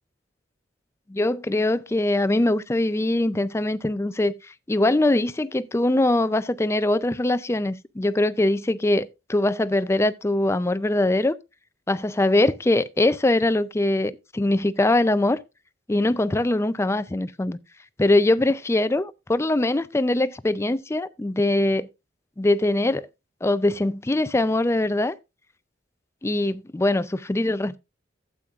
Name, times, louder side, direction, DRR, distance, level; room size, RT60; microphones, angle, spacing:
voice 1, 1.1-4.3 4.7-11.4 11.9-15.4 15.9-17.6 18.0-21.9 22.4-23.1 23.4-25.1 26.2-27.8, left 1 dB, 15° left, 0.4 m, -22 dB
12.0 x 8.3 x 2.4 m
head